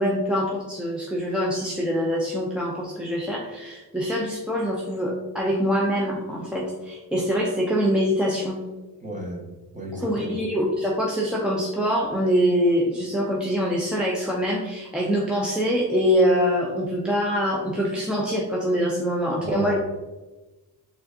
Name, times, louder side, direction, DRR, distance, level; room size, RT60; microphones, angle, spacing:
voice 1, 0.0-8.6 9.9-19.7, equal, 5° right, -4 dB, 0.5 m, -24 dB
voice 2, 9.0-9.4 9.7-10.4 19.4-19.7, right 1 dB, 20° right, -3 dB, 1.2 m, -32 dB
4.4 x 2.6 x 2.7 m, 1.1 s
cardioid pair, 90°, 36 cm